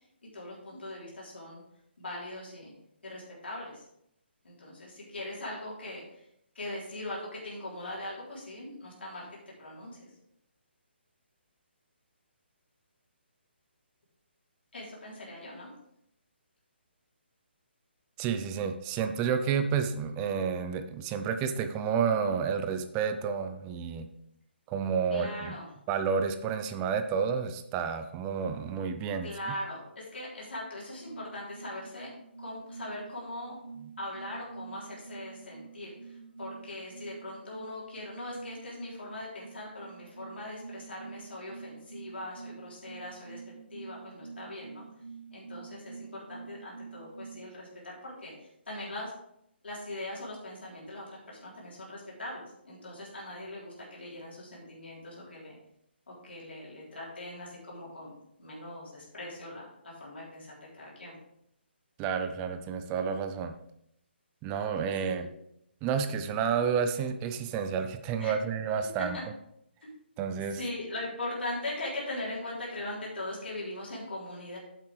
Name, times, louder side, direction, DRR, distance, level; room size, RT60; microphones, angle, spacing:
voice 1, 0.3-1.6 2.0-2.7 3.0-3.9 4.4-6.3 6.5-9.3 9.6-10.1 14.7-15.7 25.1-25.7 29.2-32.1 32.4-33.6 34.0-43.4 43.7-44.8 45.3-49.1 49.6-55.6 56.1-61.1 65.1-65.3 68.2-68.3 69.1-69.2 69.8-69.9 70.6-74.6, left 1 dB, 70° left, -5 dB, 3.5 m, -40 dB
voice 2, 18.2-24.1 24.7-25.5 25.9-29.5 62.0-63.5 64.4-65.3 65.8-69.2 70.2-70.6, right 6 dB, 20° right, 8 dB, 0.5 m, -30 dB
sound 1, 30.9-47.4, right 5 dB, 35° left, 3.1 m, -47 dB
9.6 x 7.5 x 3.3 m, 0.76 s
figure-of-eight pair, 140°, 6 cm